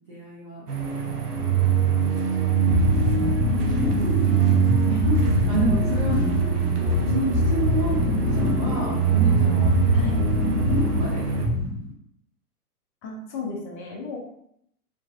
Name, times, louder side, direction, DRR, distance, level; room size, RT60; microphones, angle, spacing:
voice 1, 0.1-0.7 2.5-2.7 4.3-4.4 4.9-6.2 6.6-9.7 10.7-11.3, right 3 dB, 25° right, -8 dB, 0.3 m, -30 dB
sound 1, 0.7-11.5, right 7 dB, 80° right, 0.8 m, -24 dB
sound 2, 2.7-11.9, left 3 dB, 80° left, 1.5 m, -24 dB
voice 2, 9.9-10.2 13.0-14.2, left 3 dB, 25° left, -1 dB, 0.7 m, -33 dB
3.8 x 2.4 x 2.4 m, 0.73 s
hypercardioid pair, 115°, 46 cm